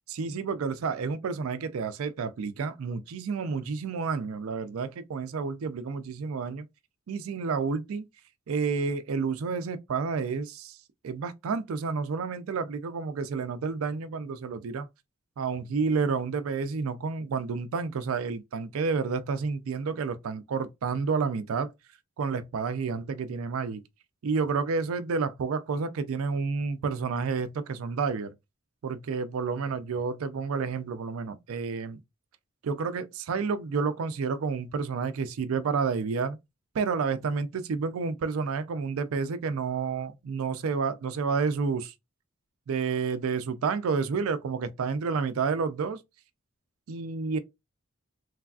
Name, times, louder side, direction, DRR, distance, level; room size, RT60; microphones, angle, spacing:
voice 1, 0.1-6.7 7.1-8.1 8.5-10.8 11.0-14.9 15.4-21.7 22.2-23.8 24.2-28.3 28.8-32.0 32.6-36.4 36.7-41.9 42.7-46.0 46.9-47.4, right 5 dB, 80° right, 0.4 m, -30 dB
3.2 x 2.3 x 2.3 m
head